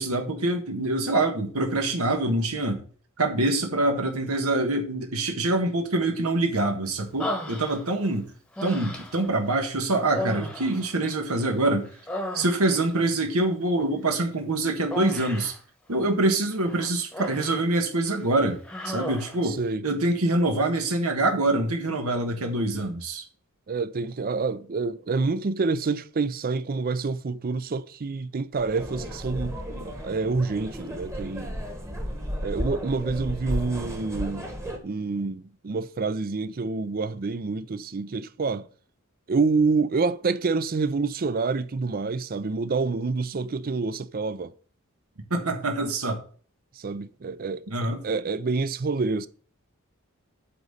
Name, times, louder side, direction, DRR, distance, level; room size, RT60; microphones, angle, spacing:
voice 1, 0.0-2.8 3.2-8.3 8.6-11.9 12.3-15.5 15.9-23.2 45.3-46.2 47.7-48.0, right 2 dB, 85° right, 1.4 m, -25 dB
Human voice, 7.2-8.1 8.5-9.3 10.1-11.5 11.8-12.9 14.9-15.6 16.6-17.6 18.0-18.2 18.6-19.4, left 1 dB, 5° left, 1.1 m, -34 dB
voice 2, 19.4-19.8 23.7-31.6 32.4-34.5 34.8-38.7 39.3-44.5 46.8-49.3, right 4 dB, 45° right, 0.5 m, -27 dB
sound 1, 28.6-34.8, equal, 15° right, 1.3 m, -34 dB
8.8 x 4.1 x 6.5 m
head